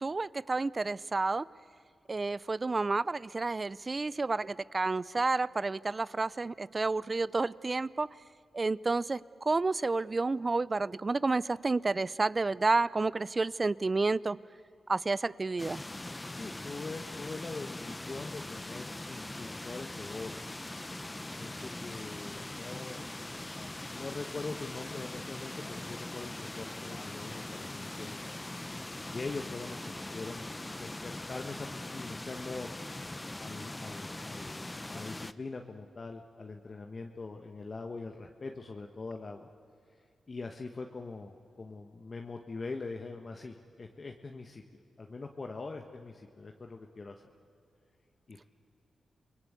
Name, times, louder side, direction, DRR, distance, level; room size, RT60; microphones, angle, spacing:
voice 1, 0.0-1.5 2.1-8.1 8.5-14.4 14.9-15.8, right 3 dB, 40° right, 20 dB, 0.5 m, -30 dB
sound 1, 15.6-35.3, left 2 dB, 20° left, 0.8 m, -41 dB
voice 2, 16.3-20.4 21.4-23.1 23.9-28.2 29.0-30.4 30.8-32.7 33.4-39.5 40.3-44.6 45.0-47.1 48.3-48.5, left 3 dB, 45° left, 3 dB, 1.5 m, -42 dB
28.5 x 19.5 x 8.3 m, 2.4 s
supercardioid pair, 50°, 0 cm